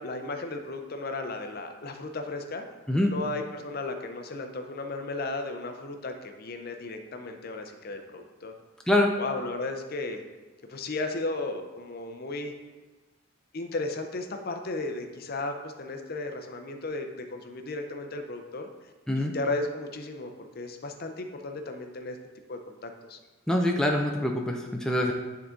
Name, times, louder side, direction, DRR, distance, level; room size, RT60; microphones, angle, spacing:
voice 1, 0.0-2.6 3.0-8.5 9.2-10.2 10.7-12.5 13.5-18.7 19.2-22.2 22.5-23.2, left 2 dB, 45° left, 5 dB, 0.6 m, -35 dB
voice 2, 23.5-25.1, left 1 dB, 5° left, 1 dB, 0.4 m, -24 dB
9.7 x 3.8 x 3.7 m, 1.3 s
head